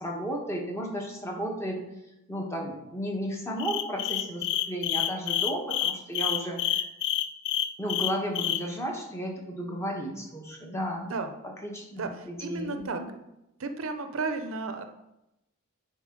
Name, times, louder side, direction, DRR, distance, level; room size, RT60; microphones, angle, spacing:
voice 1, 0.0-1.8 2.3-6.8 7.8-11.1 11.4-12.9, equal, 15° left, 0 dB, 1.1 m, -34 dB
sound 1, 3.6-8.6, left 11 dB, 55° left, 0.4 m, -28 dB
voice 2, 12.0-13.0 13.6-14.9, right 3 dB, 75° right, 8 dB, 0.7 m, -33 dB
9.8 x 4.4 x 3.8 m, 0.90 s
head